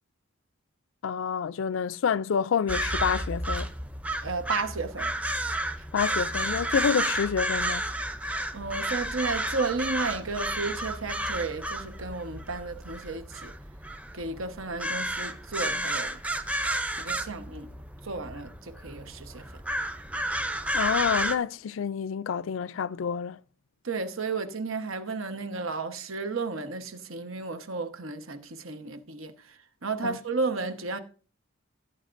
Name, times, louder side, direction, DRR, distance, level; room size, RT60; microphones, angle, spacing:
voice 1, 1.0-3.7 5.9-7.8 20.7-23.4 30.0-30.2, left 7 dB, 75° left, 0.4 m, -28 dB
sound 1, 2.7-21.3, right 1 dB, 5° right, 0.5 m, -32 dB
voice 2, 4.2-5.1 5.4-5.5 8.5-13.5 14.1-16.2 17.0-17.7 18.0-19.4 23.8-31.0, right 3 dB, 85° right, 1.2 m, -33 dB
16.0 x 8.9 x 2.6 m
head